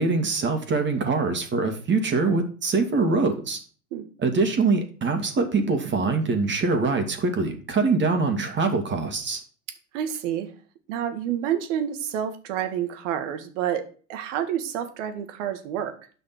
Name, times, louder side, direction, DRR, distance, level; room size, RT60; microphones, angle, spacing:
voice 1, 0.0-3.6 4.2-9.4, right 3 dB, 25° right, 6 dB, 2.3 m, -23 dB
voice 2, 9.9-10.5 10.9-13.8 14.1-15.9, right 10 dB, 60° right, 9 dB, 1.9 m, -28 dB
8.7 x 5.9 x 5.9 m, 0.40 s
hypercardioid pair, 95°, 41 cm